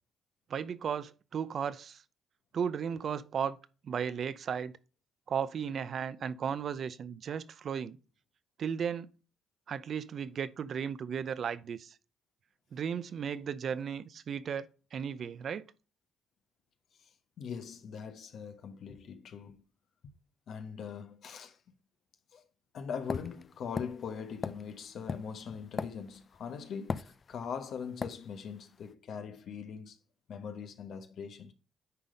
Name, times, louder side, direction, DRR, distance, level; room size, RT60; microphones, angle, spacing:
voice 1, 0.5-2.0 2.5-3.6 3.8-4.7 5.3-8.0 8.6-9.1 9.7-12.0 12.7-15.7, right 7 dB, 55° right, 0.6 m, -35 dB
voice 2, 17.4-19.6 20.5-21.6 22.3-22.4 22.7-30.0 30.3-31.5, left 6 dB, 65° left, 1.1 m, -41 dB
sound 1, 23.1-26.4 26.9-27.6 28.0-28.2, left 5 dB, 40° left, 0.5 m, -37 dB
9.8 x 4.0 x 5.1 m
cardioid pair, 90°, 0 cm